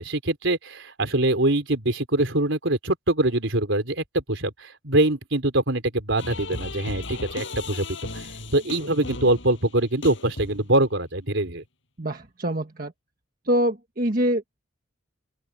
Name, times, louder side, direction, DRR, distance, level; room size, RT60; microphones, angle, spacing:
voice 1, 0.0-8.3 8.5-11.6, right 1 dB, 65° right, 4.1 m, -24 dB
sound 1, 6.2-10.9, left 2 dB, 65° left, 7.1 m, -36 dB
voice 2, 12.0-12.9 13.5-14.6, equal, 45° right, 1.5 m, -25 dB
open air
head